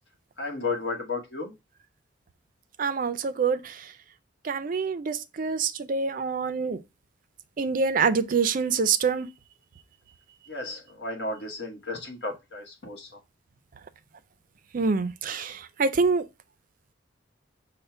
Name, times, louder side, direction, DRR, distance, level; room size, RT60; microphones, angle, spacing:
voice 1, 0.4-1.5 10.5-13.2, left 3 dB, 60° left, 1.2 m, -33 dB
voice 2, 2.8-3.8 4.4-6.8 7.6-9.3 14.7-16.3, right 5 dB, 45° right, 0.4 m, -26 dB
5.4 x 2.1 x 4.3 m
head